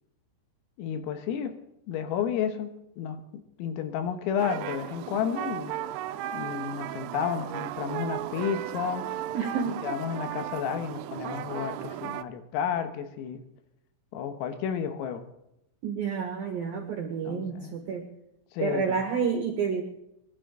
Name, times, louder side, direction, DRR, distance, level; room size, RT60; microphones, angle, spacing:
voice 1, 0.8-1.6 1.9-5.7 6.3-9.1 9.8-13.4 14.1-15.2 17.3-17.7 18.5-19.0, left 8 dB, 90° left, 8 dB, 4.0 m, -31 dB
sound 1, 4.4-12.2, right 13 dB, 80° right, 3.1 m, -35 dB
voice 2, 9.3-9.8 15.8-18.0 18.6-19.8, right 6 dB, 65° right, 3 dB, 2.5 m, -29 dB
25.0 x 12.0 x 3.8 m, 0.81 s
omnidirectional pair, 5.9 m